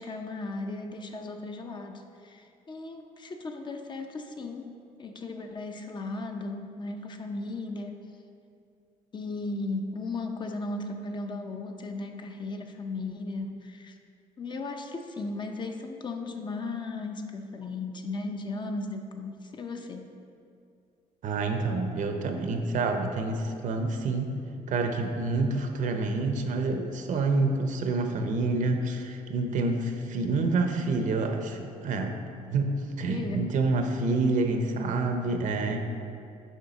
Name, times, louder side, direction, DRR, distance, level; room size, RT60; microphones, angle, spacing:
voice 1, 0.0-8.0 9.1-14.0 14.4-20.1 33.1-33.5, left 3 dB, 30° left, 4 dB, 0.5 m, -36 dB
voice 2, 21.2-24.3 24.7-32.2 32.5-35.8, right 3 dB, 60° right, 5 dB, 0.7 m, -28 dB
7.3 x 5.4 x 4.0 m, 2.5 s
cardioid pair, 120°, 15 cm